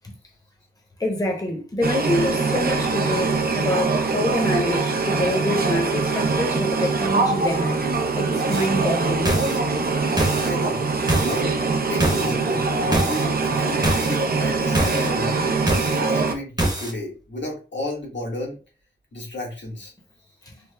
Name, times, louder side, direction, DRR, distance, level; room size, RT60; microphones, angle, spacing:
voice 1, 1.0-7.8 8.2-9.3, left 1 dB, 20° left, 0.8 m, -26 dB
sound 1, 1.8-16.3, right 4 dB, 55° right, 0.5 m, -23 dB
sound 2, 8.5-8.7 9.2-9.6 10.2-10.5 11.1-11.4 12.0-12.3 12.9-13.2 13.8-14.2 14.7-15.1 15.7-16.0 16.6-16.9, right 1 dB, 20° right, 0.8 m, -23 dB
voice 2, 10.4-10.9 11.2-15.3 15.9-18.6 19.1-19.9, left 1 dB, 75° left, 1.3 m, -32 dB
3.3 x 2.0 x 3.3 m
wide cardioid pair, 75°, 19 cm